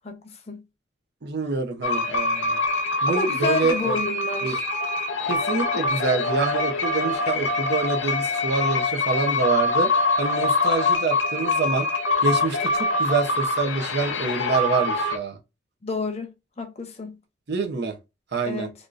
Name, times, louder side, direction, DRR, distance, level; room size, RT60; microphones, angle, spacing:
voice 1, 0.0-0.6 3.1-4.6 15.8-17.2 18.5-18.7, left 3 dB, 30° left, 0.7 m, -30 dB
voice 2, 1.2-2.6 3.0-4.0 4.4-4.6 5.3-9.9 10.2-11.9 12.2-15.4 17.5-18.0 18.3-18.7, right 4 dB, 55° right, 0.7 m, -26 dB
sound 1, 1.8-15.2, left 3 dB, 70° left, 0.7 m, -24 dB
3.5 x 2.5 x 2.5 m
head